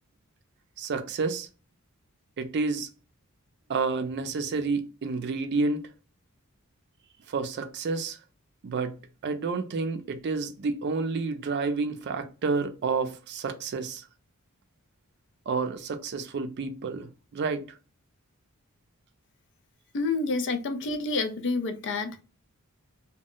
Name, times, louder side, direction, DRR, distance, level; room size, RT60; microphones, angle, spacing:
voice 1, 0.8-1.5 2.4-2.9 3.7-5.8 7.3-8.2 8.6-14.0 15.5-17.7, right 4 dB, 50° right, 0.4 m, -30 dB
voice 2, 19.9-22.2, left 3 dB, 55° left, 0.4 m, -28 dB
2.2 x 2.0 x 3.7 m
head